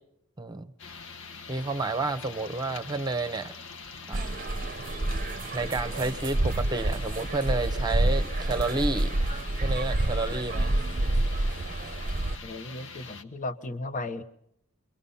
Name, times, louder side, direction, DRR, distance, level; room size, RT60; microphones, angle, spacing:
voice 1, 0.4-0.7 1.5-3.5 4.1-4.4 5.5-9.2 9.6-10.7, right 3 dB, 20° right, 9 dB, 1.0 m, -30 dB
sound 1, 0.8-13.2, left 4 dB, 60° left, 1.5 m, -44 dB
sound 2, 4.1-12.4, right 1 dB, 40° right, 0.8 m, -28 dB
voice 2, 12.4-14.2, left 2 dB, 35° left, 11 dB, 1.1 m, -35 dB
27.5 x 23.5 x 5.6 m, 0.75 s
head